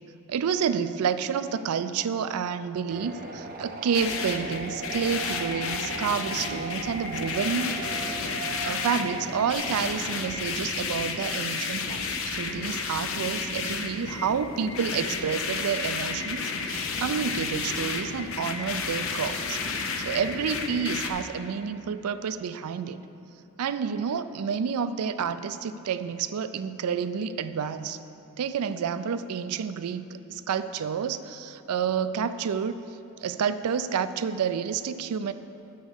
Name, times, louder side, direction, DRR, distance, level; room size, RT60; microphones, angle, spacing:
voice 1, 0.3-7.7 8.6-19.6 20.0-23.0 23.6-28.0 28.4-32.7 33.2-35.3, right 7 dB, 85° right, 12 dB, 0.4 m, -29 dB
sound 1, 2.9-9.5, right 3 dB, 40° right, 0.7 m, -38 dB
sound 2, 3.9-21.1, left 4 dB, 65° left, 0.7 m, -32 dB
9.3 x 5.2 x 6.5 m, 2.8 s
head